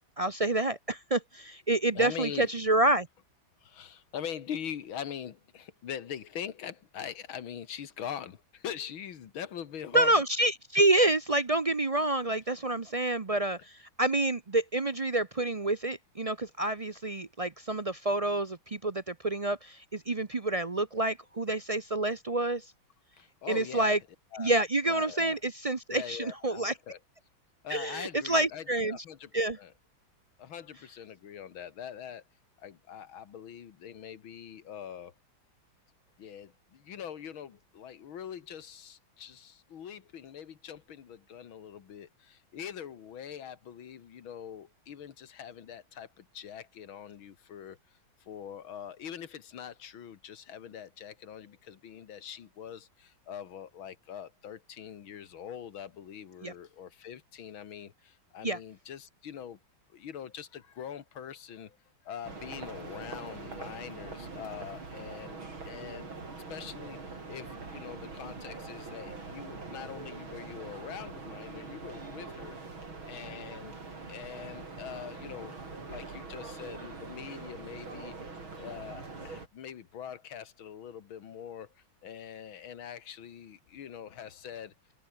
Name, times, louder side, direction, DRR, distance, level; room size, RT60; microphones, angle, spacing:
voice 1, 0.2-3.1 9.9-22.7 23.5-24.0 24.4-26.7 27.7-29.0 29.3-29.6 56.4-56.5 58.4-58.6, right 2 dB, 45° right, 0.4 m, -28 dB
voice 2, 1.9-2.5 3.6-10.2 23.2-24.0 24.3-24.5 24.9-25.4 25.9-27.0 27.6-29.7 30.4-32.2 32.6-35.1 36.2-47.8 48.2-59.6 59.9-61.8 62.1-65.4 65.6-66.1 66.5-72.6 73.1-73.8 74.1-75.6 75.9-78.2 78.6-84.7, left 9 dB, 85° left, 2.4 m, -43 dB
sound 1, 62.2-79.5, right 3 dB, 85° right, 5.5 m, -43 dB
omnidirectional pair, 2.2 m